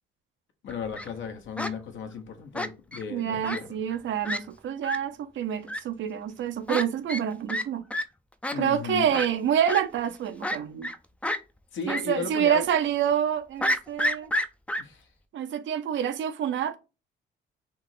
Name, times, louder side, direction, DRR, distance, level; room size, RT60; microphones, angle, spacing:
voice 1, 0.6-3.6 8.5-9.2 11.7-12.6 14.8-15.0, left 6 dB, 70° left, 1.2 m, -35 dB
Fowl, 0.7-1.1 1.6-1.7 2.5-3.0 3.4-3.6 3.9-4.0 4.2-4.4 4.8-5.0 5.7-5.8 6.7-6.8 7.1-7.2 7.5-7.6 7.9-8.0 8.4-8.6 9.1-9.3 9.7-9.8 10.4-11.0 11.2-11.4 11.9-12.0 12.3-12.4 13.6-14.8, left 1 dB, 5° left, 0.5 m, -29 dB
voice 2, 3.1-7.9 8.6-10.9 11.9-14.3 15.3-16.8, right 9 dB, 70° right, 0.8 m, -27 dB
3.6 x 2.9 x 4.8 m
cardioid pair, 90°, 20 cm